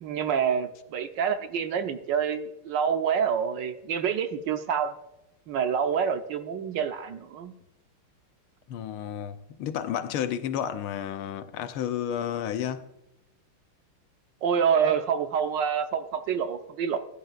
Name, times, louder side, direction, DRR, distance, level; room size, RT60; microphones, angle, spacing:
voice 1, 0.0-5.0 5.5-7.5 14.4-17.0, right 7 dB, 70° right, 1.2 m, -27 dB
voice 2, 8.7-12.9, left 9 dB, 85° left, 1.6 m, -31 dB
14.5 x 10.0 x 2.4 m
omnidirectional pair, 2.3 m